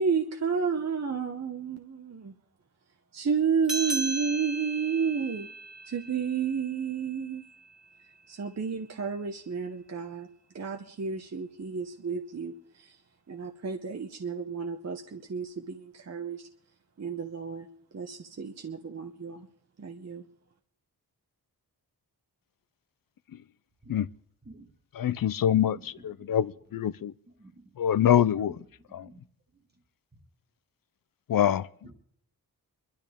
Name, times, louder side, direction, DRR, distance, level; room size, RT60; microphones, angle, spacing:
voice 1, 0.0-2.3 3.1-5.5 5.9-7.4 8.3-10.3 10.5-13.0 13.3-16.5 17.0-17.7 17.9-19.5 19.8-20.3, right 6 dB, 40° right, 0.9 m, -31 dB
sound 1, 3.6-8.5, right 2 dB, ahead, 1.9 m, -38 dB
voice 2, 25.0-27.1 27.8-28.6 28.9-29.1 31.3-31.7, left 10 dB, 60° left, 0.5 m, -25 dB
voice 3, 27.3-27.7 28.9-29.2 31.8-31.9, right 2 dB, 25° right, 1.7 m, -52 dB
24.0 x 12.5 x 3.5 m
wide cardioid pair, 155°, 39 cm